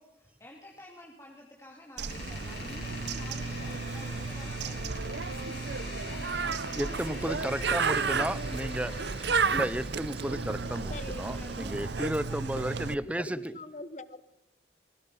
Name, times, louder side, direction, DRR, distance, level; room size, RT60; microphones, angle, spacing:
voice 1, 0.0-5.2 6.0-8.6 10.6-13.5, left 1 dB, 15° left, -1 dB, 2.7 m, -51 dB
Bird, 2.0-13.0, right 4 dB, 75° right, 0.9 m, -33 dB
Door, 2.1-10.6, left 3 dB, 60° left, 7.0 m, -45 dB
voice 2, 6.8-8.9 9.5-13.4, right 1 dB, 10° right, 16 dB, 0.8 m, -33 dB
sound 1, 7.1-12.4, right 3 dB, 30° right, 2.3 m, -50 dB
voice 3, 10.9-11.2 11.7-12.8 13.0-14.3, left 1 dB, 40° left, 15 dB, 1.1 m, -44 dB
28.0 x 22.5 x 5.6 m, 0.87 s
head